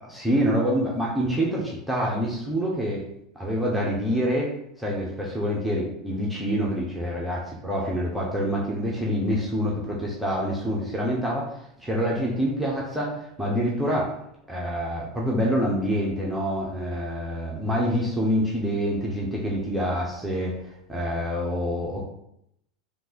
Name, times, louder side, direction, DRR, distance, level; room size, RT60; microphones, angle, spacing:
voice 1, 0.1-3.1 3.3-4.5 4.8-14.1 14.5-20.5 20.9-22.0, equal, ahead, -5 dB, 1.0 m, -26 dB
3.8 x 2.9 x 4.3 m, 0.76 s
figure-of-eight pair, 85°, 3 cm